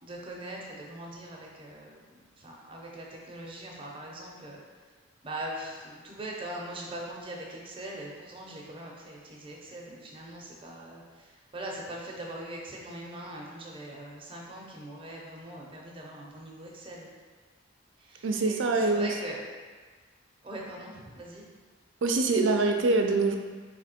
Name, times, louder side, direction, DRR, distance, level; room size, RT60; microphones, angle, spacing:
voice 1, 0.0-2.1 2.4-4.6 5.2-17.1 18.0-19.4 20.4-21.4, right 1 dB, 30° right, -2 dB, 0.7 m, -41 dB
voice 2, 18.2-19.1 22.0-23.4, right 3 dB, 70° right, 4 dB, 0.5 m, -24 dB
3.4 x 3.3 x 4.2 m, 1.4 s
head